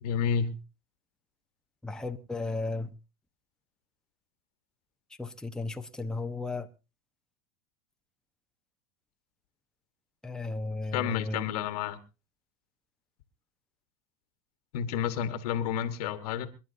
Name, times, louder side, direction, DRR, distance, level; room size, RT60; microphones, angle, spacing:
voice 1, 0.0-0.5 10.9-12.0 14.7-16.5, left 8 dB, 75° left, 1.6 m, -30 dB
voice 2, 1.8-2.9 5.2-6.7 10.2-11.5, left 3 dB, 5° left, 1.1 m, -34 dB
27.0 x 11.0 x 2.7 m
supercardioid pair, 110°, 20 cm